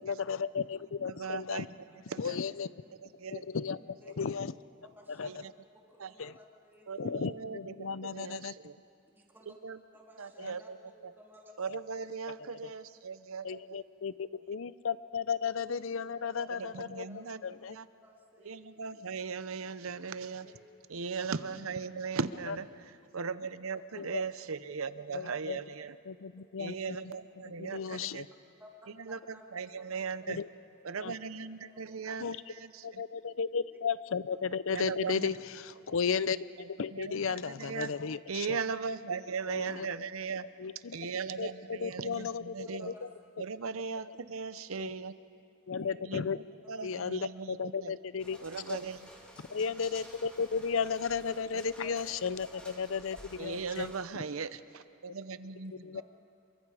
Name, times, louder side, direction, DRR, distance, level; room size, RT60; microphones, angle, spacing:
voice 1, 0.0-1.7 2.2-2.7 3.3-4.5 5.1-5.4 6.2-6.3 7.0-8.5 10.4-10.5 13.4-17.1 17.4-17.8 23.9-24.2 25.1-25.6 26.1-27.0 27.6-28.2 30.3-30.5 31.0-31.1 32.2-32.4 32.8-36.4 36.7-38.6 39.5-39.9 40.6-41.0 41.4-42.9 44.8-44.9 45.7-46.4 46.8-48.4 48.7-48.8 49.4-53.9 55.8-56.0, left 6 dB, 70° left, 16 dB, 0.6 m, -34 dB
voice 2, 1.1-1.7 2.1-2.4 3.0-3.4 5.2-5.5 6.0-6.1 6.9-8.8 9.5-9.8 10.2-10.8 11.0-11.1 11.6-13.8 16.6-17.4 17.7-17.9 18.4-20.5 20.9-26.0 26.6-28.3 28.9-30.4 30.8-33.0 34.7-35.4 36.6-37.9 38.3-40.5 40.9-42.9 43.4-45.1 46.0-46.3 46.7-47.9 48.4-49.1 51.5-51.6 53.4-56.0, right 5 dB, 85° right, 13 dB, 0.8 m, -38 dB
voice 3, 5.0-5.3 5.7-7.1 9.1-9.5 9.9-11.5 15.5-15.6 16.4-16.6 17.1-17.7 18.0-18.9 20.4-20.6 27.6-27.8 28.6-28.7 29.1-30.1 30.9-31.2 31.7-32.2 35.7-36.0 41.8-41.9 42.8-43.1 45.8-45.9 46.8-46.9 52.5-52.6 53.4-53.9 55.9-56.0, equal, 10° right, -2 dB, 2.5 m, -57 dB
sound 1, 48.2-54.0, equal, 5° left, 2.5 m, -52 dB
28.0 x 23.5 x 4.9 m, 2.4 s
head